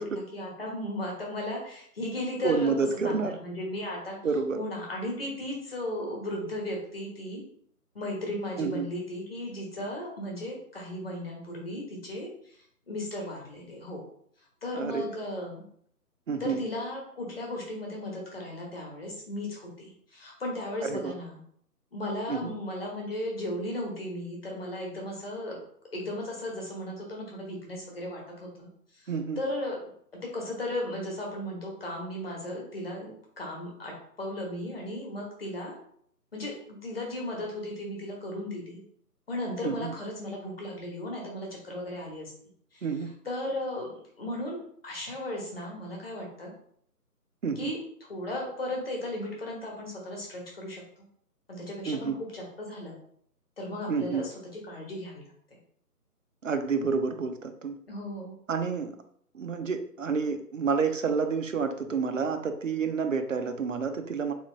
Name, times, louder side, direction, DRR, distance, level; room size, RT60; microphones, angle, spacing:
voice 1, 0.0-2.7 3.0-4.2 4.5-7.4 7.9-12.3 12.9-14.0 14.6-15.6 16.4-21.4 21.9-25.6 25.9-28.7 29.4-29.9 30.2-35.7 36.3-38.8 39.3-42.3 42.7-42.8 43.2-44.6 44.8-46.5 47.6-47.8 48.1-51.1 51.5-53.0 53.6-55.3 57.9-58.4, left 1 dB, 35° left, -1 dB, 1.1 m, -36 dB
voice 2, 2.4-3.4 4.2-4.6 8.6-8.9 14.7-15.1 16.3-16.6 20.8-21.1 22.3-22.5 29.1-29.4 39.6-39.9 42.8-43.1 47.4-47.7 51.9-52.2 53.9-54.3 56.4-57.8 58.5-58.9 59.3-64.3, right 5 dB, 55° right, 8 dB, 0.5 m, -29 dB
3.5 x 3.0 x 3.0 m, 0.64 s
figure-of-eight pair, 165°, 48 cm